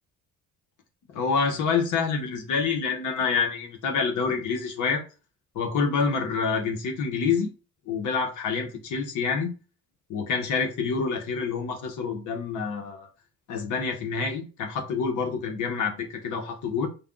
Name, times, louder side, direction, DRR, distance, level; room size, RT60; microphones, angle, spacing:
voice 1, 1.1-5.0 5.5-7.5 7.9-9.5 10.1-13.1 13.5-16.9, left 5 dB, 80° left, 1.2 m, -27 dB
5.4 x 2.4 x 3.7 m
cardioid pair, 90°, 30 cm